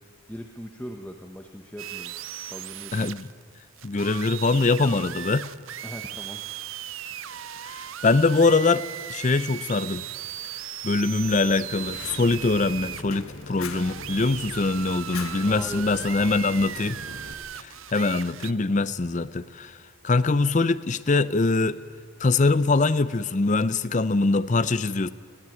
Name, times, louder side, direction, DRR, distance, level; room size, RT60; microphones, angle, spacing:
voice 1, 0.3-2.1 2.4-3.1 5.8-6.4 15.4-17.0, equal, 10° left, 1.0 m, -40 dB
sound 1, 1.8-18.5, right 11 dB, 70° right, 0.6 m, -37 dB
voice 2, 2.9-3.3 3.8-5.5 7.6-8.8 9.1-10.0 10.8-17.0 17.6-19.8 20.0-21.8 22.2-25.1, left 3 dB, 35° left, 0.5 m, -23 dB
Fire, 11.2-17.3, left 3 dB, 80° left, 1.5 m, -41 dB
20.5 x 16.5 x 9.1 m
head